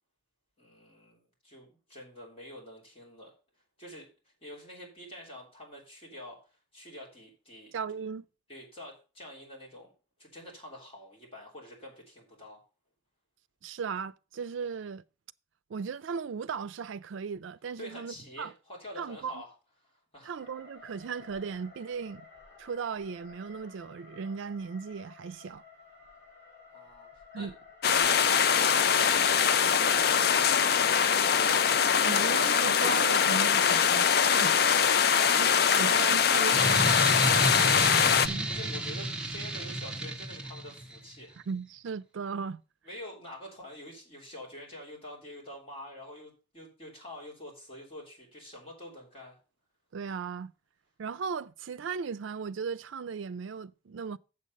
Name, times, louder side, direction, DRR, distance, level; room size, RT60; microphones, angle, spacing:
voice 1, 0.6-3.3 3.8-7.7 8.5-9.9 10.2-12.6 17.8-19.5 19.8-20.4 26.7-27.5 34.9-41.4 42.8-49.4, left 1 dB, 30° left, 3.3 m, -47 dB
voice 2, 7.7-8.2 13.6-15.0 15.7-18.5 19.0-19.4 20.2-22.3 22.6-25.6 27.3-27.5 32.0-34.6 35.4-36.9 38.2-38.5 41.5-42.6 49.9-50.5 51.0-54.2, right 5 dB, 80° right, 0.4 m, -37 dB
sound 1, 20.4-30.5, left 4 dB, 10° left, 6.5 m, -54 dB
sound 2, 27.8-38.3, left 7 dB, 50° left, 0.4 m, -23 dB
Logo Dissolve Electric A, 36.5-41.0, right 1 dB, 5° right, 0.9 m, -31 dB
7.5 x 7.1 x 5.3 m
head